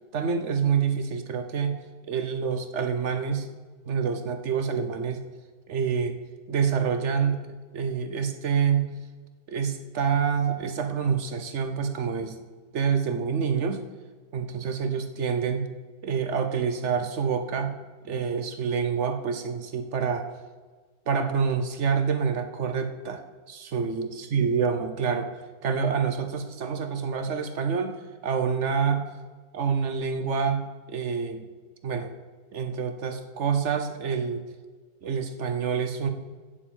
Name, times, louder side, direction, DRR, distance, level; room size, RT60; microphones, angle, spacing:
voice 1, 0.1-1.8 2.1-3.5 3.8-5.2 5.7-6.2 6.5-7.4 7.7-8.9 9.5-12.4 12.7-13.8 14.3-15.7 16.0-17.8 18.0-20.2 21.1-23.2 23.5-25.3 25.6-29.1 29.5-31.5 31.8-32.1 32.5-34.4 35.0-36.1, right 6 dB, 55° right, 7 dB, 0.8 m, -27 dB
7.7 x 7.3 x 8.5 m, 1.4 s
omnidirectional pair, 2.1 m